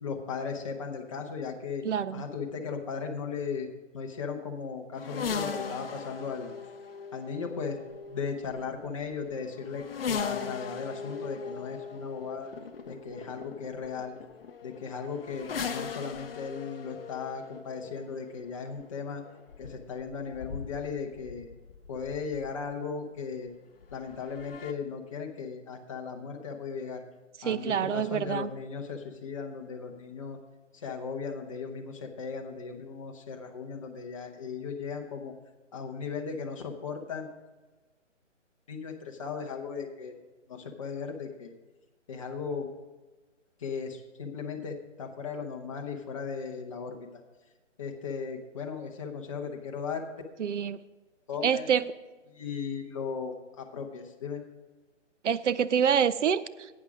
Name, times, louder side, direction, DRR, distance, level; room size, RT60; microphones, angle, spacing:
voice 1, 0.0-1.8 2.1-3.7 3.9-6.5 7.1-7.8 8.1-12.5 12.9-14.1 14.6-19.2 19.6-21.5 21.9-23.5 23.9-27.0 27.4-30.4 30.7-35.3 35.7-37.3 38.7-40.1 40.5-41.5 42.1-42.7 43.6-47.0 47.8-50.0 51.3-51.7 52.3-54.4, left 5 dB, 25° left, 2 dB, 1.0 m, -37 dB
voice 2, 1.8-2.2 27.4-28.5 50.4-50.8 51.4-51.8 55.2-56.4, right 8 dB, 70° right, 15 dB, 0.6 m, -26 dB
sound 1, 4.9-22.7 23.8-24.7, left 6 dB, 50° left, 0.8 m, -39 dB
11.5 x 8.7 x 5.0 m, 1.2 s
hypercardioid pair, 165°, 37 cm